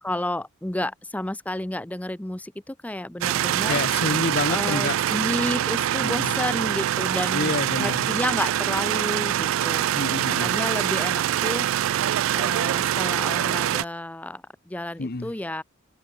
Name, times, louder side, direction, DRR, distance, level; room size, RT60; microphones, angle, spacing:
voice 1, 0.0-3.8 4.5-7.5 7.8-9.9 10.4-11.7 12.3-15.6, left 1 dB, 5° left, 0.5 m, -31 dB
sound 1, 3.2-13.8, right 11 dB, 70° right, 0.3 m, -24 dB
voice 2, 3.7-5.0 6.0-6.3 7.3-8.1 9.9-10.6 15.0-15.3, left 3 dB, 50° left, 1.0 m, -28 dB
open air
head